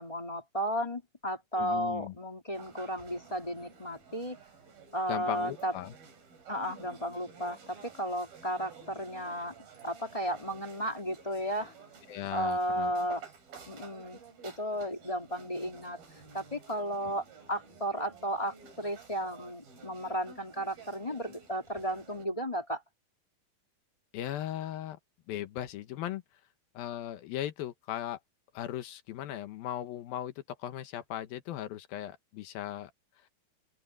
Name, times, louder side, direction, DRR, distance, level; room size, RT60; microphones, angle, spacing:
voice 1, 0.0-4.4 4.9-5.7 6.5-9.5 9.8-11.7 12.3-13.2 13.7-16.0 16.3-22.8, equal, 10° left, 2.5 m, -34 dB
voice 2, 1.6-2.2 5.1-5.9 12.1-12.9 17.0-17.1 24.1-25.0 25.3-26.2 26.7-28.2 28.5-32.9, left 12 dB, 85° left, 3.0 m, -38 dB
sound 1, 2.5-22.3, right 5 dB, 80° right, 6.7 m, -53 dB
open air
omnidirectional pair, 4.1 m